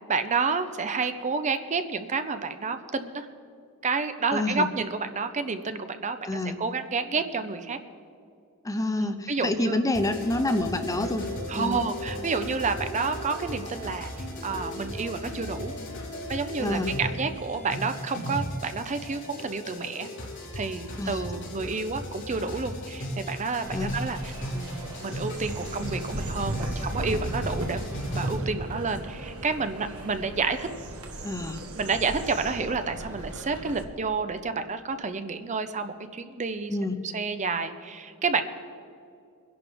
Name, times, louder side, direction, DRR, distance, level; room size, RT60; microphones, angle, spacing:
voice 1, 0.1-3.3 3.8-7.8 9.0-9.8 11.5-14.1 14.4-15.7 16.3-20.1 20.5-30.7 31.8-36.8 37.1-38.5, right 4 dB, 35° right, 9 dB, 0.7 m, -30 dB
voice 2, 4.3-4.7 6.2-6.6 8.6-11.3 11.6-11.8 16.6-16.9 21.0-21.2 23.7-24.0 31.2-31.6 36.7-37.0, left 2 dB, 15° left, 8 dB, 0.6 m, -28 dB
sound 1, 9.9-28.4, equal, 60° left, 3.6 m, -36 dB
sound 2, 23.6-33.8, right 1 dB, 80° right, 1.3 m, -36 dB
23.5 x 11.0 x 3.6 m, 2.4 s
head